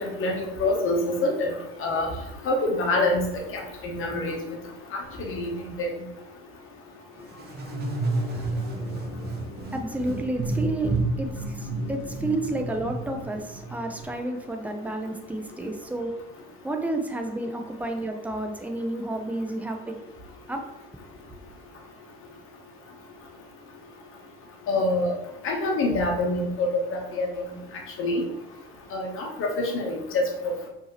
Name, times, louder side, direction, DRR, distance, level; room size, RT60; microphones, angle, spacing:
voice 1, 0.0-1.5 1.8-2.1 2.4-3.2 3.5-4.4 4.9-5.9 24.7-25.1 25.4-27.6 28.0-28.2 28.9-30.7, left 2 dB, 40° left, 1 dB, 1.1 m, -26 dB
sound 1, 7.3-14.1, right 2 dB, 30° right, 0.9 m, -31 dB
voice 2, 8.3-9.0 9.7-16.1 16.6-20.0 20.5-20.6 20.9-21.0, right 2 dB, 5° right, 4 dB, 0.5 m, -31 dB
4.6 x 2.8 x 3.0 m, 0.92 s
figure-of-eight pair, 60°, 31 cm